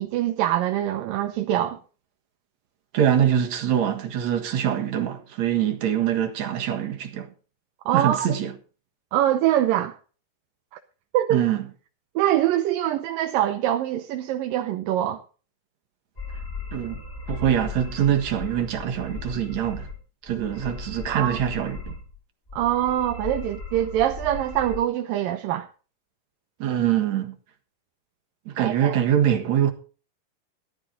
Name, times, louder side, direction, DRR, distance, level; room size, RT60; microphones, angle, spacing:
voice 1, 0.0-1.8 7.9-8.4 9.1-10.0 11.1-11.5 12.2-15.2 21.1-21.4 22.5-25.7 28.6-29.0, right 12 dB, 80° right, 2.5 m, -24 dB
voice 2, 2.9-7.3 7.9-8.5 11.3-11.7 16.7-17.0 17.3-19.9 20.2-22.0 26.6-27.4 28.5-29.7, right 10 dB, 60° right, 2.6 m, -24 dB
sound 1, 16.2-20.0 20.3-22.2 22.5-24.8, left 2 dB, 20° left, 5.9 m, -37 dB
14.5 x 12.0 x 3.8 m
omnidirectional pair, 4.0 m